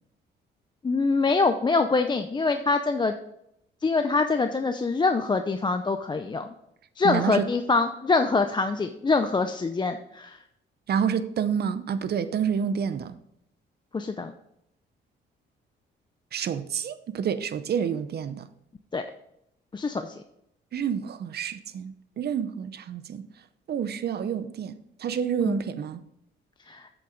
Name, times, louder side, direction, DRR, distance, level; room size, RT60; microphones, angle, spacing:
voice 1, 0.8-3.1 3.8-6.5 7.0-10.4 13.9-14.3 18.9-19.0 19.7-20.1 25.5-25.6 26.7-26.8, left 3 dB, 25° left, 0.5 m, -24 dB
voice 2, 7.0-7.5 10.9-13.2 16.3-18.5 20.7-23.3 23.7-26.0, right 7 dB, 55° right, 0.7 m, -28 dB
8.4 x 7.0 x 4.0 m
cardioid pair, 90°, 20 cm